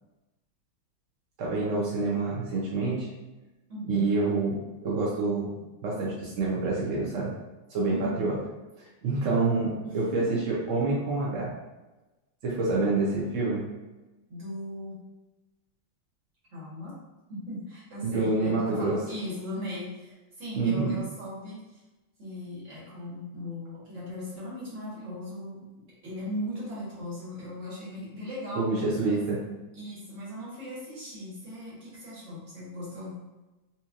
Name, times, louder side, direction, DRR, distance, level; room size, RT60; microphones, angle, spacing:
voice 1, 1.4-3.1 3.9-5.5 5.8-7.3 7.7-8.3 8.8-11.5 12.4-13.6 18.0-19.0 20.5-21.0 28.5-29.6, right 3 dB, 70° right, -5 dB, 0.7 m, -27 dB
voice 2, 3.7-4.1 7.9-8.2 9.8-10.3 12.8-12.9 14.3-15.0 16.5-16.9 17.3-21.6 22.2-25.7 26.0-28.8 29.1-29.2 29.7-33.2, left 1 dB, 40° right, -7 dB, 1.5 m, -38 dB
4.2 x 2.8 x 2.4 m, 1.1 s
omnidirectional pair, 2.2 m